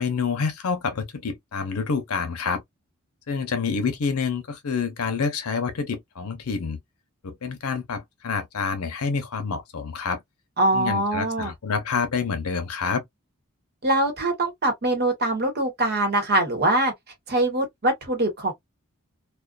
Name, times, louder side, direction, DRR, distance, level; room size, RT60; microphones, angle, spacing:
voice 1, 0.0-2.6 3.3-6.8 7.2-10.2 10.7-13.0, left 5 dB, 85° left, 0.7 m, -27 dB
voice 2, 10.6-11.5 13.8-16.9 17.3-18.5, right 1 dB, 45° right, 1.1 m, -23 dB
2.4 x 2.3 x 2.2 m
head